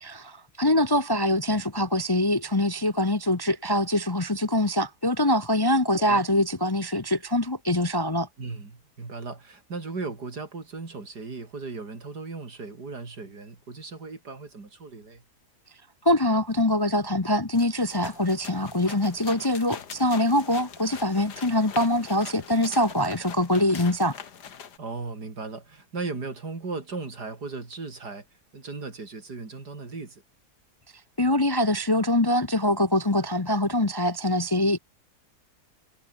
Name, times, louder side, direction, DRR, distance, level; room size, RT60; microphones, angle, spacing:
voice 1, 0.0-8.3 16.0-24.1 31.2-34.8, left 1 dB, 20° left, 0.7 m, -24 dB
voice 2, 8.4-15.2 24.8-28.2 28.5-30.2, right 4 dB, 80° right, 4.2 m, -37 dB
sound 1, 17.5-24.8, left 7 dB, 80° left, 2.1 m, -43 dB
omnidirectional pair, 1.7 m